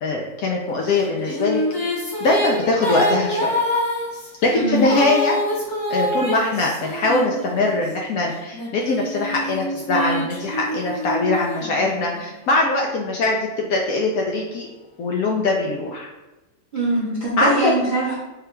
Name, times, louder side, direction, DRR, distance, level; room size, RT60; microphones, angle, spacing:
voice 1, 0.0-1.6 2.2-3.5 4.4-5.4 5.9-14.7 15.0-16.1 17.4-17.7, left 2 dB, 75° left, -1 dB, 1.0 m, -22 dB
sound 1, 0.9-7.9 8.5-12.3, left 1 dB, 30° left, 0.4 m, -26 dB
voice 2, 4.5-4.9 16.7-18.2, right 1 dB, 45° right, -8 dB, 0.7 m, -22 dB
3.7 x 2.3 x 4.2 m, 1.1 s
omnidirectional pair, 1.6 m